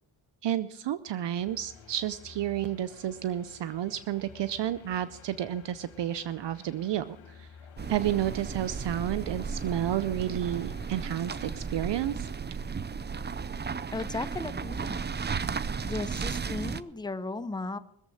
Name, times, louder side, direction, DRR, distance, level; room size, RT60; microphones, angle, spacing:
voice 1, 0.4-7.5 7.9-12.3, right 11 dB, 60° right, 14 dB, 0.6 m, -31 dB
sound 1, 1.4-11.8, left 6 dB, 85° left, 1.8 m, -52 dB
sound 2, 7.8-16.8, right 5 dB, 20° right, 0.5 m, -34 dB
voice 2, 13.9-15.1 15.8-17.8, left 3 dB, 10° left, 13 dB, 0.7 m, -35 dB
20.0 x 7.4 x 6.4 m, 0.84 s
cardioid pair, 65°, 48 cm